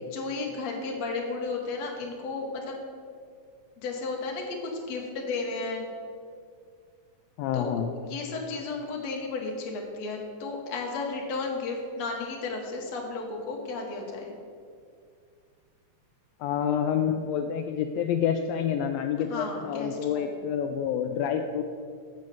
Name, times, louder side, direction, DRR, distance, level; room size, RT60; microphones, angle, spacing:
voice 1, 0.1-2.8 3.8-5.8 7.5-7.8 8.0-14.3 19.3-20.3, left 3 dB, 65° left, 1 dB, 2.4 m, -33 dB
voice 2, 7.4-7.9 16.4-21.6, left 8 dB, 85° left, 5 dB, 1.5 m, -28 dB
7.4 x 6.4 x 7.5 m, 2.2 s
omnidirectional pair, 3.4 m